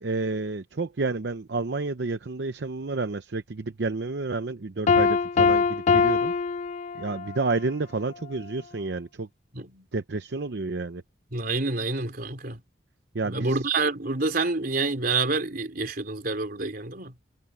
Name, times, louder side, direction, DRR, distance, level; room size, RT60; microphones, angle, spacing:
voice 1, 0.0-6.3 6.9-9.3 9.9-11.0 13.1-13.6, right 3 dB, 70° right, 0.7 m, -30 dB
Piano, 4.9-7.4, left 5 dB, 40° left, 0.3 m, -22 dB
voice 2, 9.5-9.9 11.3-12.6 13.2-17.1, right 3 dB, 55° right, 3.6 m, -28 dB
head